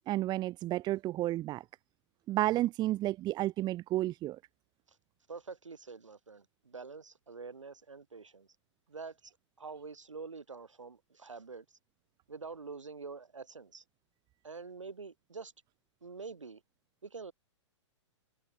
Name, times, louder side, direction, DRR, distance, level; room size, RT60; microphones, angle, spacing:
voice 1, 0.1-1.6 2.3-4.4, right 15 dB, 25° right, 2.8 m, -31 dB
voice 2, 5.3-8.5 8.9-11.6 12.3-13.8 14.4-15.5 16.0-16.6 17.0-17.3, right 4 dB, 80° right, 6.6 m, -46 dB
figure-of-eight pair, 115°, 16 cm